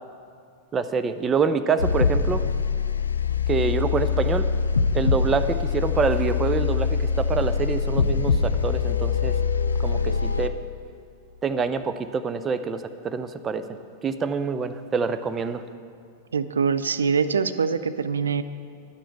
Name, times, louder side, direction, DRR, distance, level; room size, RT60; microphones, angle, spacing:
voice 1, 0.7-2.4 3.5-4.5 4.9-9.3 9.8-10.6 11.4-13.6 14.0-15.6, right 5 dB, 25° right, 10 dB, 0.5 m, -26 dB
sound 1, 1.8-10.5, left 5 dB, 85° left, 0.4 m, -23 dB
voice 2, 16.3-18.4, right 5 dB, 80° right, 12 dB, 0.4 m, -24 dB
11.0 x 9.2 x 4.6 m, 2.4 s
hypercardioid pair, 95°, 0 cm